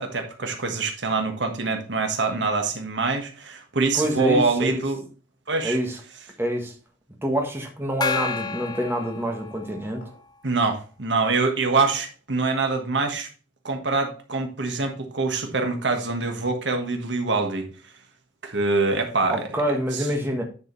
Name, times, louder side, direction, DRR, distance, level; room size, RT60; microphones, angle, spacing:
voice 1, 0.0-5.0 5.5-5.8 10.4-13.3 13.6-17.7 18.4-19.6, right 3 dB, 65° right, 1.5 m, -24 dB
voice 2, 3.9-4.8 5.6-6.0 6.4-6.7 7.2-10.0 19.3-20.4, equal, 10° right, 1.5 m, -26 dB
Gong, 8.0-10.0, left 5 dB, 20° left, 0.5 m, -30 dB
sound 1, 8.1-8.6 10.0-10.3 11.8-12.2, left 2 dB, 90° left, 3.4 m, -42 dB
9.6 x 5.1 x 3.9 m
head